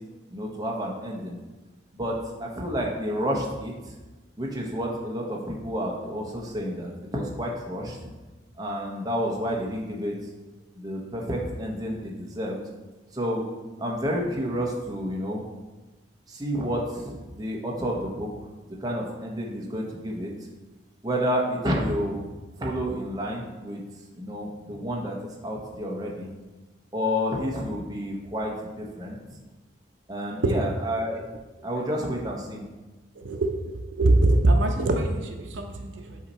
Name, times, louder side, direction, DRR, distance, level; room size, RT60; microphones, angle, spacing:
voice 1, 0.3-1.4 1.9-3.7 4.4-8.0 8.6-10.1 10.7-12.6 13.1-13.4 13.8-15.4 16.3-18.3 18.8-20.3 21.0-22.2 22.6-23.8 24.2-25.2 25.4-26.3 26.9-29.2 30.1-31.3 31.6-32.6, equal, 20° right, -2 dB, 0.8 m, -30 dB
voice 2, 33.2-33.5 34.0-36.2, right 2 dB, 80° right, 4 dB, 0.6 m, -22 dB
8.3 x 2.8 x 4.1 m, 1.2 s
head